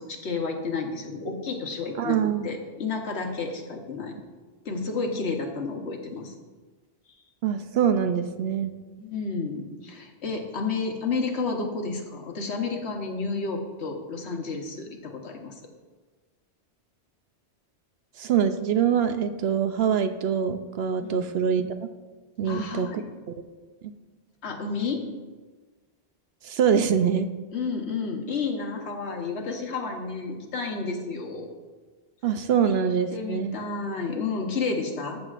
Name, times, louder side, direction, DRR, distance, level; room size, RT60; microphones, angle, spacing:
voice 1, 0.0-4.1 4.6-6.3 9.0-15.5 21.0-21.2 22.4-23.1 24.4-25.1 27.5-31.5 32.6-32.7 33.1-35.2, left 4 dB, 70° left, 3 dB, 1.4 m, -31 dB
voice 2, 2.0-2.5 7.4-8.7 18.2-21.7 22.4-22.9 26.4-27.3 32.2-33.6, right 8 dB, 70° right, 9 dB, 0.8 m, -24 dB
14.0 x 7.3 x 2.5 m, 1.3 s
omnidirectional pair, 1.2 m